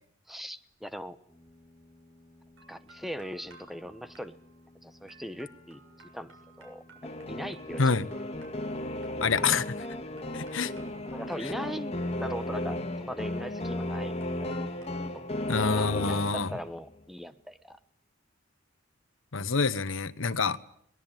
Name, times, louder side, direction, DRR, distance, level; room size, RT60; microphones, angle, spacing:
voice 1, 0.3-1.2 2.7-4.4 4.8-5.8 6.1-6.3 6.6-6.8 7.3-8.0 11.1-14.1 14.4-14.5 15.1-15.3 15.8-17.8, equal, ahead, 1.0 m, -40 dB
sound 1, 0.7-2.1 2.5-14.9, right 2 dB, 85° right, 6.7 m, -59 dB
sound 2, 1.3-8.1 10.7-13.5, left 2 dB, 20° right, 5.5 m, -58 dB
sound 3, 7.0-16.8, left 1 dB, 35° left, 2.0 m, -35 dB
voice 2, 9.2-9.7 10.3-10.7 15.5-16.5 19.3-20.6, left 4 dB, 85° left, 1.1 m, -26 dB
22.5 x 20.0 x 9.1 m
head